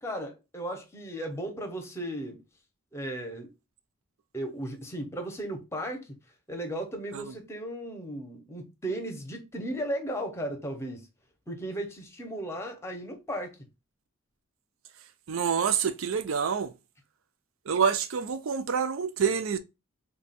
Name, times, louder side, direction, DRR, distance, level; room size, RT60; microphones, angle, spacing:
voice 1, 0.0-2.4 2.9-3.5 4.3-6.1 6.5-11.1 11.5-13.6, right 1 dB, 10° left, 0.7 m, -35 dB
voice 2, 15.3-16.7 17.7-19.6, right 6 dB, 70° right, 0.5 m, -27 dB
3.4 x 2.2 x 4.1 m
head